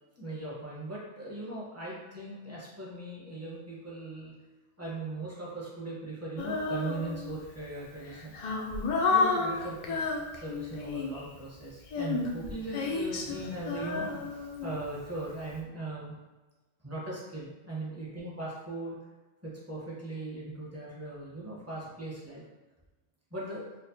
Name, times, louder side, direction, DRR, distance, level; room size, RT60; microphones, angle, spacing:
voice 1, 0.2-4.3 4.8-8.3 9.1-10.0 10.4-16.1 16.8-19.0 19.4-22.5 23.3-23.6, right 2 dB, 15° right, -7 dB, 0.9 m, -39 dB
Female singing, 6.4-7.4 8.0-11.3 11.9-15.0, left 4 dB, 55° left, 0.5 m, -31 dB
4.4 x 2.3 x 2.7 m, 1.2 s
omnidirectional pair, 1.2 m